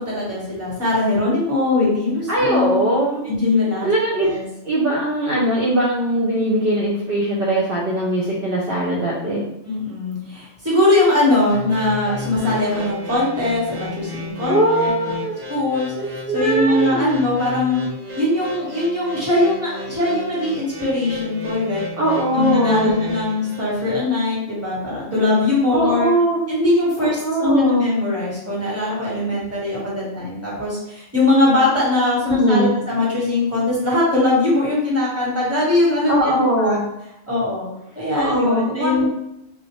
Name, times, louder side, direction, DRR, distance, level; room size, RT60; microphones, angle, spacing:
voice 1, 0.1-2.9 3.3-3.9 4.2-4.4 9.6-14.9 15.5-15.9 16.3-17.8 18.2-21.8 22.3-26.1 26.5-36.8 37.3-37.7 37.9-39.1, left 2 dB, 15° right, -7 dB, 1.2 m, -21 dB
voice 2, 2.3-3.2 3.8-4.3 4.6-9.4 14.5-15.4 16.0-17.2 22.0-23.0 25.7-26.4 27.0-27.9 32.3-32.7 36.1-36.9 38.1-39.1, right 1 dB, 60° right, -5 dB, 0.8 m, -20 dB
sound 1, 11.5-24.0, left 1 dB, 80° right, 1.0 m, -33 dB
3.4 x 2.4 x 3.0 m, 0.85 s
omnidirectional pair, 1.2 m